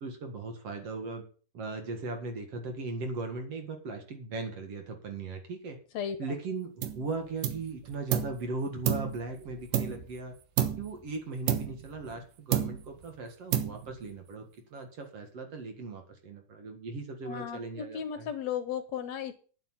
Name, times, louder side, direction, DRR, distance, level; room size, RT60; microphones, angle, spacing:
voice 1, 0.0-1.2 1.5-5.8 6.2-10.3 10.8-14.4 14.7-18.3, right 3 dB, 50° right, 5 dB, 2.7 m, -38 dB
voice 2, 5.9-6.4 17.3-19.4, left 8 dB, 70° left, 10 dB, 1.9 m, -35 dB
sound 1, 6.8-7.1 7.4-8.4 8.9-10.2 10.6-11.0 11.5-12.2 12.5-13.0 13.5-14.1, right 11 dB, 85° right, 2.7 m, -31 dB
9.7 x 7.4 x 7.3 m, 0.40 s
omnidirectional pair, 3.7 m